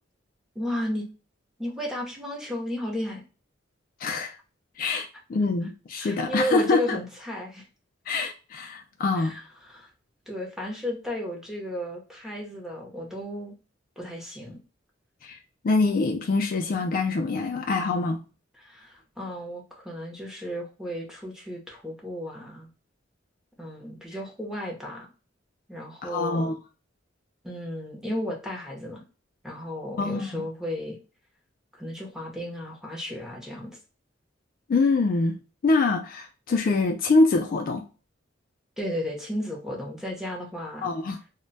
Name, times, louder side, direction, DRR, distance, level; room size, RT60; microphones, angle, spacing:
voice 1, 0.5-1.1 1.6-3.2 6.0-7.6 9.2-9.9 10.3-13.6 14.0-14.6 18.6-22.7 23.6-25.1 25.7-26.5 27.4-29.0 29.4-31.0 31.8-33.8 38.8-40.9, left 1 dB, 5° right, 0.7 m, -34 dB
voice 2, 4.0-4.3 4.8-7.0 8.1-9.3 15.2-15.4 15.6-18.2 26.0-26.5 30.0-30.5 34.7-35.4 35.6-37.8 40.8-41.2, left 3 dB, 45° left, 0.3 m, -24 dB
2.1 x 2.1 x 3.8 m
head